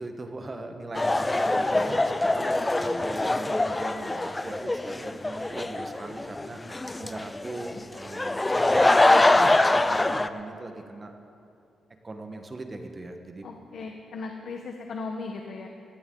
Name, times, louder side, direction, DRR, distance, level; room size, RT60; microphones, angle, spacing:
voice 1, 0.0-6.6 7.0-11.1 12.0-13.5, right 2 dB, 25° right, 5 dB, 1.3 m, -40 dB
sound 1, 0.9-10.3, left 2 dB, 15° left, 0.5 m, -24 dB
voice 2, 13.4-15.7, left 4 dB, 60° left, 3 dB, 1.1 m, -37 dB
19.5 x 17.5 x 3.9 m, 2.7 s
cardioid pair, 130°, 0 cm